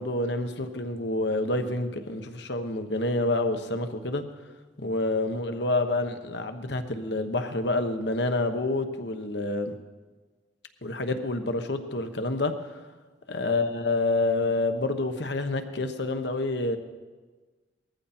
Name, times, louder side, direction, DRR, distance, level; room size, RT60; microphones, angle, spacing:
voice 1, 0.0-4.2 4.8-9.7 10.8-12.5 13.3-16.8, left 2 dB, 65° left, 7 dB, 1.2 m, -28 dB
19.5 x 14.5 x 4.4 m, 1.3 s
head